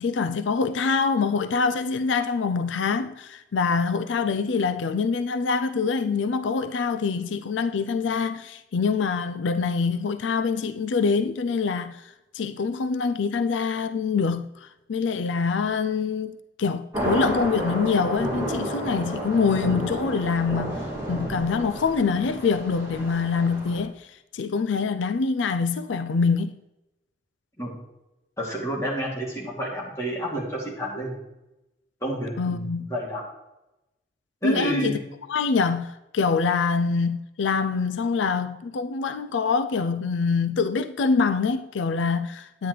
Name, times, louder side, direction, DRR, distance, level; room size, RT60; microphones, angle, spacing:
voice 1, 0.0-12.0 12.3-20.8 21.1-24.1 24.3-26.5 32.4-32.9 34.4-35.0 35.3-42.7, left 5 dB, 85° left, 0.4 m, -25 dB
sound 1, 16.9-23.8, right 1 dB, 15° right, 2.4 m, -31 dB
voice 2, 28.4-31.2 32.0-33.2 34.4-34.9, right 1 dB, 15° left, 2.8 m, -30 dB
10.0 x 9.4 x 3.3 m
head